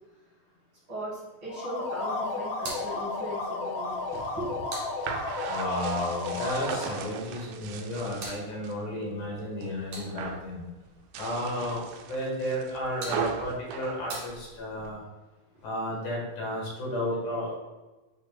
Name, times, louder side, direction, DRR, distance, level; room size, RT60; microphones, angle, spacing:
voice 1, 0.9-4.7 15.8-15.9, equal, 45° right, -6 dB, 2.5 m, -38 dB
sound 1, 1.4-7.1, left 3 dB, 60° left, 1.8 m, -33 dB
sound 2, 2.5-5.6 7.6-10.5 12.5-15.0, right 2 dB, 60° right, 2.6 m, -45 dB
sound 3, 3.9-8.8 9.2-9.7 10.0-10.5 11.0-14.9, right 7 dB, 80° right, 1.9 m, -38 dB
voice 2, 5.5-10.6 11.2-15.0 15.6-17.6, left 1 dB, 75° left, -3 dB, 3.1 m, -33 dB
8.6 x 5.3 x 2.3 m, 1.2 s
omnidirectional pair, 3.5 m